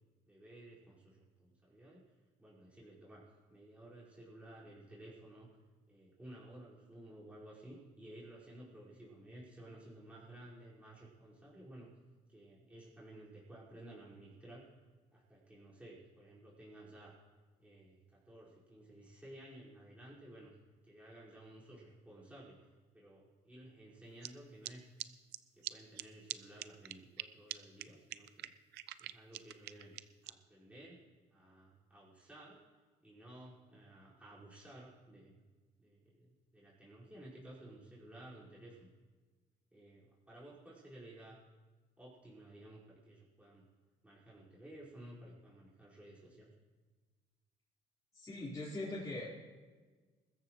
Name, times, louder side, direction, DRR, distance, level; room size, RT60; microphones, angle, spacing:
voice 1, 0.3-2.0 2.4-5.5 5.9-11.9 12.3-14.6 15.1-17.2 17.6-20.5 20.8-22.6 22.9-24.8 25.6-28.5 29.0-29.9 30.2-31.0 31.3-32.6 33.0-35.4 35.8-38.9 39.7-41.4 42.0-43.6 44.0-46.5, right 1 dB, 10° right, -8 dB, 5.2 m, -55 dB
sound 1, 24.2-24.3 24.6-24.7 25.0-25.1 25.3-25.4 25.6-25.7 26.0-26.1 26.3-26.4 26.6-27.2 27.5-27.6 27.8-27.9 28.1-30.3, right 16 dB, 80° right, 0.6 m, -42 dB
voice 2, 48.1-49.3, left 2 dB, 20° left, -9 dB, 4.3 m, -41 dB
21.5 x 14.0 x 3.2 m, 1.4 s
cardioid pair, 110°, 17 cm